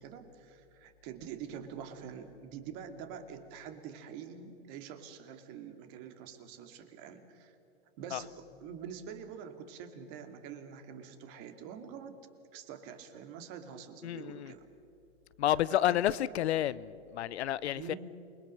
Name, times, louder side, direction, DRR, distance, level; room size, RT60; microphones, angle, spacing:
voice 1, 0.0-7.5 8.0-12.2 12.5-14.7 15.7-16.4 17.7-18.0, right 7 dB, 40° right, 8 dB, 2.5 m, -46 dB
voice 2, 14.0-14.5 15.4-17.9, left 12 dB, 75° left, 18 dB, 0.8 m, -30 dB
28.0 x 22.0 x 6.6 m, 2.8 s
hypercardioid pair, 130°, 33 cm